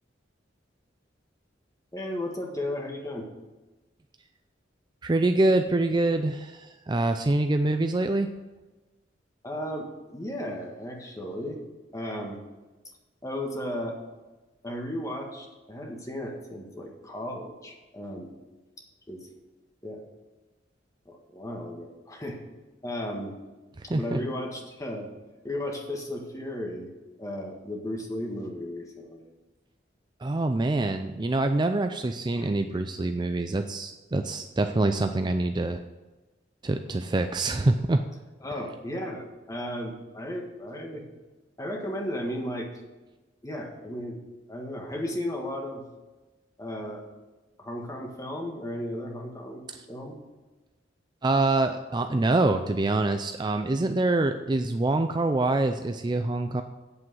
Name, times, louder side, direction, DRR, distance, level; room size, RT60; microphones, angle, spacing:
voice 1, 1.9-3.3 9.4-11.6 11.9-12.4 13.2-14.0 14.6-18.3 19.1-19.2 19.8-20.0 21.0-22.4 22.8-23.3 23.8-25.1 25.4-26.9 27.2-29.2 32.4-33.0 38.4-41.0 41.6-42.7 43.4-44.2 44.5-45.8 46.6-47.0 47.6-49.6 49.9-50.2, left 1 dB, 20° left, 1 dB, 1.7 m, -35 dB
voice 2, 5.0-8.3 23.8-24.2 30.2-35.8 36.6-38.0 51.2-56.6, right 2 dB, 25° right, 7 dB, 0.4 m, -25 dB
8.5 x 7.7 x 7.7 m, 1.2 s
head